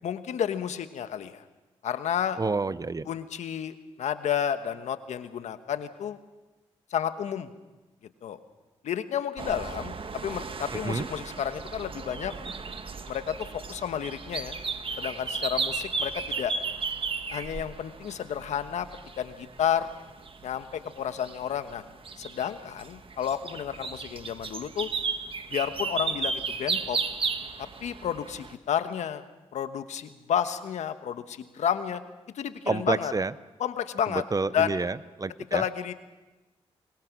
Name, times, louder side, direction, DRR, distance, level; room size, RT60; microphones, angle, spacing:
voice 1, 0.0-1.4 1.8-2.4 3.1-6.2 6.9-7.5 8.2-8.4 8.8-12.3 13.1-14.6 15.0-16.5 17.3-18.9 19.2-19.9 20.4-21.8 22.2-24.9 25.5-27.0 27.6-29.2 29.5-32.0 32.3-33.1 33.6-34.2 34.5-34.7 35.5-35.9, left 9 dB, 80° left, 10 dB, 1.3 m, -31 dB
voice 2, 2.4-3.1 10.8-11.1 32.7-33.3 34.1-35.6, right 3 dB, 30° right, 16 dB, 0.8 m, -29 dB
sound 1, 9.4-28.5, right 4 dB, 50° right, 1.6 m, -35 dB
24.0 x 21.5 x 6.2 m, 1.1 s
supercardioid pair, 55°, 12 cm